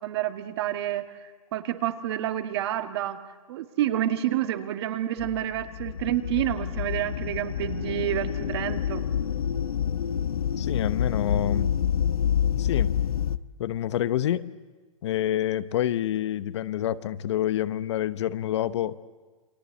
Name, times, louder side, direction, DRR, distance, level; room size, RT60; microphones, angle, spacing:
voice 1, 0.0-3.2 3.5-9.0, right 12 dB, 50° right, 8 dB, 1.9 m, -29 dB
sound 1, 5.2-13.4, left 8 dB, 85° left, 0.9 m, -28 dB
voice 2, 10.6-11.7 12.6-12.9 13.6-14.5 15.0-19.0, left 11 dB, 55° left, 14 dB, 0.9 m, -27 dB
28.5 x 23.0 x 8.3 m, 1.3 s
hypercardioid pair, 145°, 18 cm